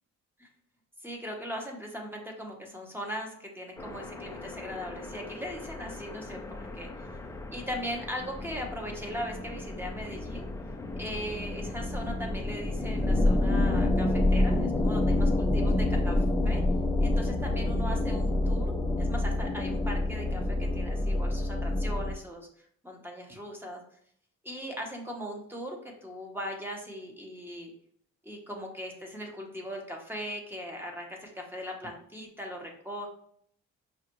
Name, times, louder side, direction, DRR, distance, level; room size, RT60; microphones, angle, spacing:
voice 1, 1.0-7.1 7.5-10.5 11.0-16.6 17.0-22.5 22.8-23.8 24.4-27.7 28.2-33.1, equal, 5° right, 1 dB, 1.0 m, -39 dB
sound 1, 3.8-22.1, left 1 dB, 10° left, 0.4 m, -29 dB
5.7 x 2.5 x 3.0 m, 0.65 s
cardioid pair, 90°, 30 cm